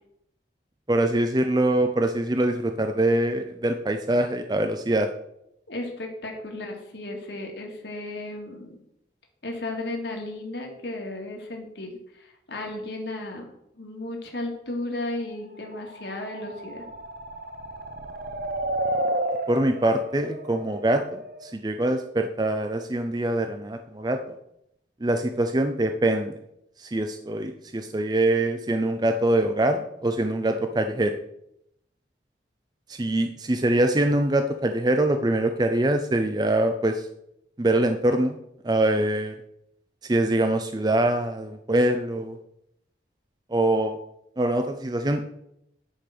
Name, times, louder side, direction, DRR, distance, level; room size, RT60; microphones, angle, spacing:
voice 1, 0.9-5.1 19.5-24.3 25.0-26.3 26.8-31.1 32.9-37.1 37.6-38.4 38.6-39.3 40.1-42.4 43.5-44.0 44.4-45.3, right 1 dB, 25° right, 7 dB, 0.5 m, -24 dB
voice 2, 5.7-8.8 9.4-13.5 13.7-16.9, left 2 dB, 70° left, 2 dB, 2.2 m, -34 dB
sound 1, 15.7-21.5, right 1 dB, 55° right, 0.8 m, -32 dB
10.0 x 5.1 x 6.0 m, 0.78 s
head